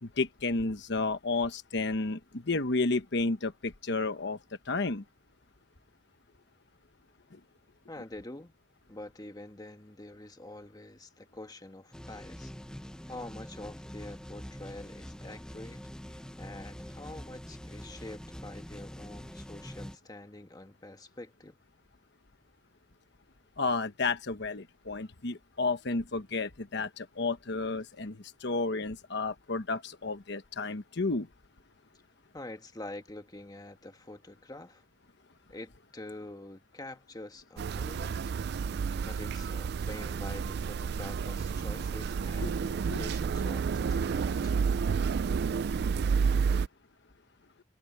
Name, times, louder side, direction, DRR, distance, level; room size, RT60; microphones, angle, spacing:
voice 1, 0.0-4.4 4.7-5.0 7.3-7.4 23.6-31.3 42.4-42.5 42.9-43.0, left 3 dB, 60° left, 1.1 m, -32 dB
voice 2, 7.9-8.5 8.9-12.5 13.1-21.6 32.3-34.8 35.5-38.4 39.0-44.6, left 2 dB, 20° left, 1.4 m, -46 dB
sound 1, 11.9-20.0, equal, 5° left, 0.6 m, -45 dB
sound 2, 37.6-46.7, right 6 dB, 55° right, 0.3 m, -30 dB
head